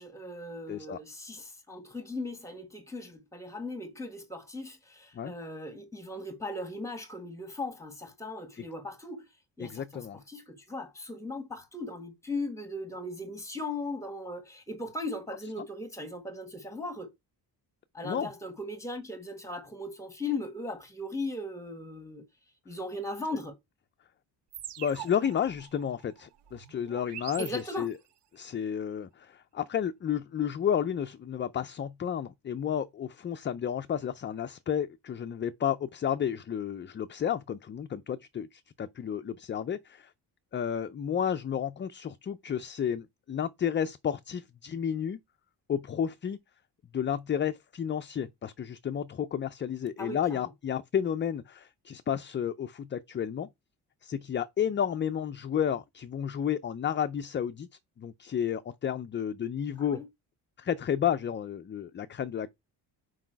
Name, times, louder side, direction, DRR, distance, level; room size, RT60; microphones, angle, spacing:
voice 1, 0.0-9.3 9.6-17.1 17.9-22.3 22.6-23.5 27.4-27.9 50.0-50.5 59.9-60.1, left 2 dB, 5° left, 1.5 m, -38 dB
voice 2, 0.7-1.0 5.1-5.3 8.6-8.7 9.6-10.2 18.0-18.3 24.8-27.9 28.3-40.1 40.5-45.2 45.7-46.4 46.9-53.5 54.0-57.7 58.0-60.0 60.6-62.5, left 8 dB, 30° left, 0.4 m, -31 dB
sound 1, 24.5-28.2, right 11 dB, 80° right, 0.9 m, -45 dB
6.0 x 4.7 x 4.5 m
cardioid pair, 135°, 41 cm